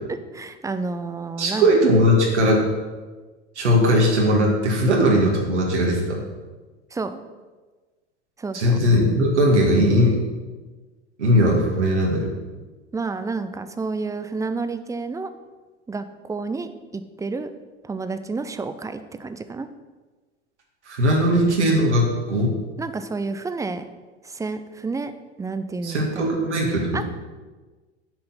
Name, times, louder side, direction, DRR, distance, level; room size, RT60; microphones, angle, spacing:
voice 1, 0.1-1.7 6.9-7.2 8.4-8.8 12.9-15.3 15.9-17.5 17.8-19.7 22.8-23.8 24.2-25.1 25.4-26.3 26.9-27.0, right 3 dB, 10° right, 10 dB, 0.6 m, -30 dB
voice 2, 1.4-2.6 3.6-6.2 8.5-10.2 11.2-12.3 20.9-22.6 25.8-27.0, equal, 80° right, -2 dB, 2.0 m, -19 dB
10.0 x 5.8 x 5.8 m, 1.3 s
figure-of-eight pair, 80°, 35 cm